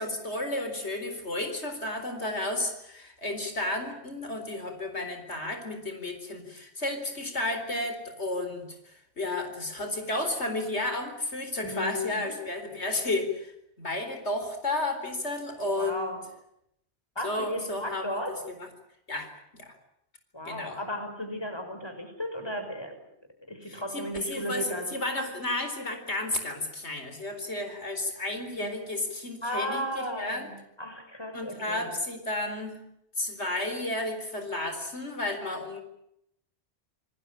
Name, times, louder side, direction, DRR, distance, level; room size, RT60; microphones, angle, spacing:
voice 1, 0.0-13.5 13.8-16.1 17.2-18.2 18.6-18.7 19.1-19.7 20.4-20.8 23.7-30.5 31.3-32.8 33.2-35.8, left 2 dB, 90° left, 7 dB, 4.5 m, -32 dB
voice 2, 11.6-12.3 15.8-16.2 17.2-18.3 20.3-22.9 23.5-24.9 29.4-31.9, equal, 25° left, 6 dB, 6.1 m, -35 dB
28.0 x 20.0 x 8.7 m, 0.77 s
omnidirectional pair, 1.1 m